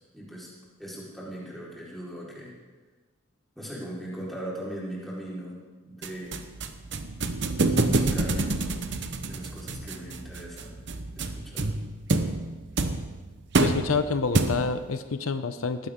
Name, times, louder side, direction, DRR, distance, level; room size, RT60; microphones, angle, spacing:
voice 1, 0.1-0.5 0.8-2.5 3.6-6.5 7.6-10.8 11.2-11.7, right 1 dB, ahead, -7 dB, 4.3 m, -39 dB
sound 1, 6.0-14.9, right 2 dB, 55° right, 0.9 m, -28 dB
voice 2, 13.6-15.9, left 4 dB, 80° left, 10 dB, 0.7 m, -27 dB
19.5 x 15.5 x 3.7 m, 1.3 s
head